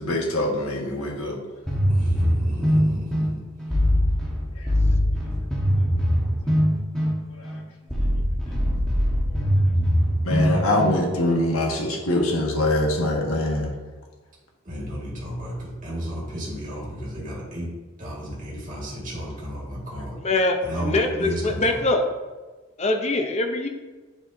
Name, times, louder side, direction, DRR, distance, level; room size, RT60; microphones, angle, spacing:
voice 1, 0.0-1.4 4.6-4.7 7.4-7.5 9.3-9.4 10.2-13.7 19.9-20.0, left 1 dB, 90° left, 0 dB, 1.5 m, -24 dB
sound 1, 1.7-11.5, equal, 5° left, 1.2 m, -22 dB
voice 2, 1.9-3.4 14.7-17.7 18.0-20.2 20.6-21.8, equal, 40° right, -5 dB, 1.9 m, -33 dB
voice 3, 20.2-22.0 22.8-23.7, left 2 dB, 30° left, 4 dB, 0.7 m, -23 dB
9.8 x 4.8 x 2.7 m, 1.3 s
head